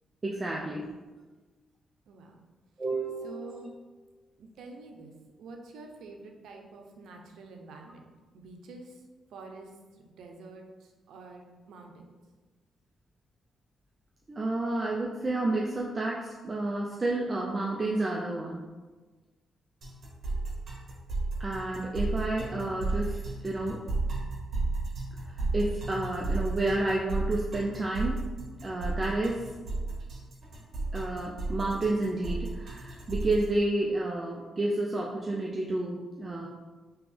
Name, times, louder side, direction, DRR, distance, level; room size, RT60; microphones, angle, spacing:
voice 1, 0.2-0.9 2.8-3.6 14.3-18.6 21.4-23.8 25.3-28.2 28.6-29.5 30.9-36.5, right 2 dB, 25° right, -2 dB, 0.4 m, -30 dB
voice 2, 3.2-3.7 4.4-5.1 5.4-8.1 8.3-9.0 9.3-12.2, right 3 dB, 85° right, 2 dB, 0.5 m, -47 dB
sound 1, 19.8-33.4, right 3 dB, 50° right, 1.1 m, -33 dB
3.6 x 2.9 x 3.3 m, 1.3 s
cardioid pair, 140°, 0 cm